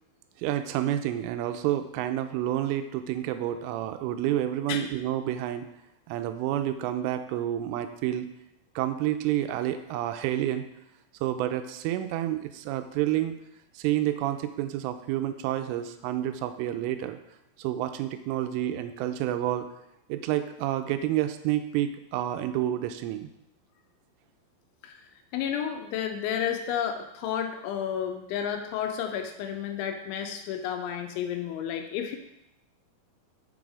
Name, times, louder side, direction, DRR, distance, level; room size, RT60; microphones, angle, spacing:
voice 1, 0.4-5.7 6.1-8.3 8.8-10.6 11.2-13.4 13.8-17.2 17.6-19.7 20.1-23.3, right 12 dB, 85° right, 8 dB, 3.1 m, -29 dB
voice 2, 25.3-32.2, left 9 dB, 80° left, 5 dB, 3.0 m, -31 dB
7.1 x 6.1 x 4.8 m, 0.83 s
omnidirectional pair, 5.6 m